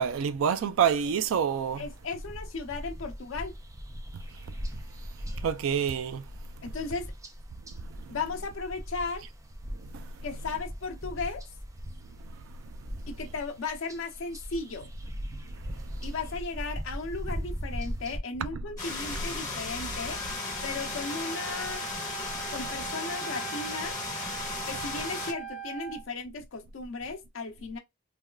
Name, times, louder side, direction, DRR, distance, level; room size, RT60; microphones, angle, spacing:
voice 1, 0.0-1.8 5.4-6.2 7.8-8.2 9.8-10.1 15.7-15.8 19.5-19.6, right 7 dB, 85° right, 0.3 m, -28 dB
sound 1, 1.5-18.2, equal, 15° right, 0.4 m, -40 dB
voice 2, 1.8-3.5 6.6-7.1 8.1-9.2 10.2-11.4 13.1-14.9 16.0-20.2 20.6-21.8 22.5-24.0 24.7-27.8, left 4 dB, 75° left, 0.6 m, -36 dB
sound 2, 18.8-25.3, left 3 dB, 20° left, 1.4 m, -36 dB
Wind instrument woodwind instrument, 20.1-26.0, right 7 dB, 35° left, 1.1 m, -41 dB
3.4 x 2.2 x 2.2 m
head